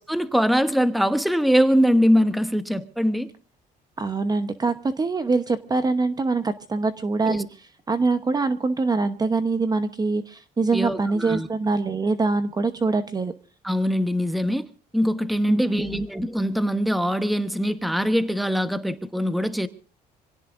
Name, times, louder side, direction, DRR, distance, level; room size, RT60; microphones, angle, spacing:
voice 1, 0.0-3.3 7.3-7.4 10.7-11.5 13.6-14.7 14.9-19.7, equal, ahead, 1.2 m, -22 dB
voice 2, 4.0-7.5 7.9-13.3 15.5-16.0, right 3 dB, 25° right, 1.0 m, -24 dB
26.5 x 17.0 x 2.6 m
cardioid pair, 110°, 17 cm